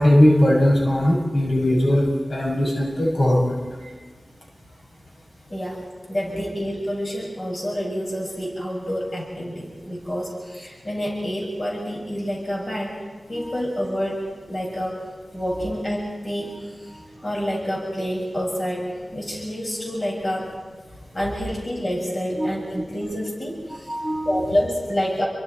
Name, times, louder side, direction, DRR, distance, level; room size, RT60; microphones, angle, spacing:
voice 1, 0.0-3.6 13.3-13.5 22.4-22.5 23.9-24.4, left 1 dB, 80° left, -3 dB, 7.3 m, -19 dB
voice 2, 5.5-5.8 6.1-13.0 13.3-15.0 15.3-16.9 17.2-20.5 21.1-23.9 24.3-25.3, equal, 55° left, -2 dB, 7.1 m, -28 dB
29.5 x 23.5 x 4.7 m, 1.4 s
wide cardioid pair, 65°, 0 cm